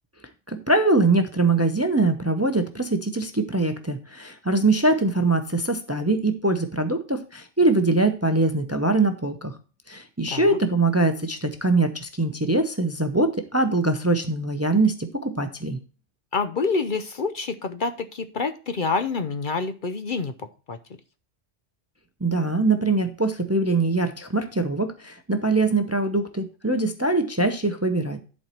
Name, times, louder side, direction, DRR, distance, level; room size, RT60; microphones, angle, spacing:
voice 1, 0.5-9.5 9.9-15.8 22.2-28.2, right 2 dB, 15° right, 8 dB, 0.6 m, -23 dB
voice 2, 10.3-10.6 16.3-20.3 20.7-20.8, left 4 dB, 50° left, 10 dB, 0.8 m, -27 dB
11.0 x 4.4 x 4.4 m, 0.36 s
omnidirectional pair, 1.2 m